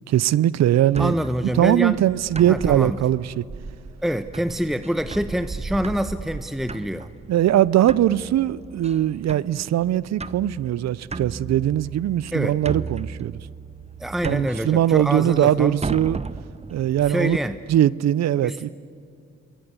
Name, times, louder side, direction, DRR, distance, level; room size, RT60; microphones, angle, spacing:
voice 1, 0.1-1.2 1.5-3.4 7.3-13.4 14.2-16.2 16.7-17.4 17.7-18.7, right 12 dB, 65° right, 0.7 m, -20 dB
sound 1, 0.9-17.8, right 4 dB, 20° right, 0.8 m, -36 dB
voice 2, 1.0-2.0 2.5-3.0 4.0-7.1 12.3-12.6 14.0-15.8 17.1-17.6 18.4-18.6, equal, ahead, 1.0 m, -26 dB
28.0 x 21.5 x 8.3 m
supercardioid pair, 50°, 29 cm